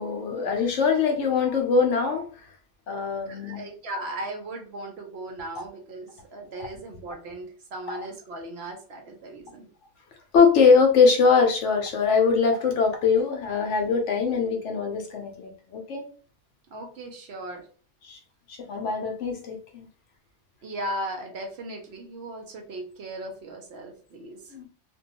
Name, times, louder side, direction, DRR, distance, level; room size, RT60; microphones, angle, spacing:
voice 1, 0.0-2.3 2.9-3.6 7.9-8.0 10.3-16.1 18.0-18.2 18.5-19.8 24.5-24.7, left 5 dB, 75° left, 2 dB, 1.0 m, -22 dB
voice 2, 3.3-9.7 16.7-17.7 20.6-24.5, right 1 dB, 65° right, 3 dB, 0.8 m, -37 dB
2.6 x 2.2 x 2.8 m, 0.41 s
omnidirectional pair, 1.2 m